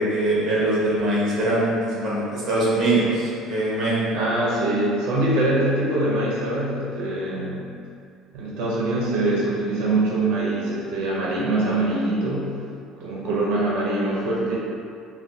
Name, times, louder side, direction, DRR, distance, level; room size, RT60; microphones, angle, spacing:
voice 1, 0.0-3.0 3.5-4.0, right 1 dB, 35° right, -6 dB, 0.8 m, -22 dB
voice 2, 4.1-7.7 8.3-12.5 13.0-14.6, right 2 dB, 80° right, -5 dB, 0.5 m, -23 dB
3.3 x 2.2 x 2.6 m, 2.4 s
cardioid pair, 175°, 0 cm